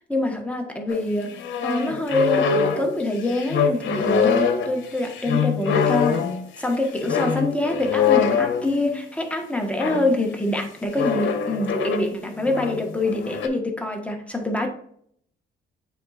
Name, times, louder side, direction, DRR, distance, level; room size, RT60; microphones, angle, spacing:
voice 1, 0.1-6.3 6.6-14.7, left 2 dB, 5° left, 1 dB, 1.4 m, -25 dB
sound 1, 0.9-9.0 9.8-10.1 10.9-12.1 12.4-13.5, left 6 dB, 70° left, 1.1 m, -24 dB
8.4 x 4.6 x 2.5 m, 0.65 s
cardioid pair, 90°, 20 cm